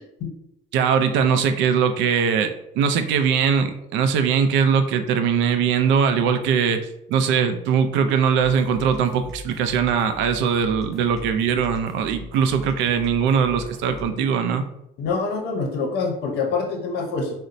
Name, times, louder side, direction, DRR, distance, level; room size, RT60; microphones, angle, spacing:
voice 1, 0.7-6.8 7.1-14.6, right 6 dB, 75° right, 8 dB, 0.4 m, -21 dB
sound 1, 8.4-14.1, left 2 dB, ahead, 0.6 m, -41 dB
voice 2, 15.0-17.3, left 4 dB, 60° left, 1 dB, 0.7 m, -25 dB
3.9 x 2.1 x 2.5 m, 0.84 s
cardioid pair, 150°, 20 cm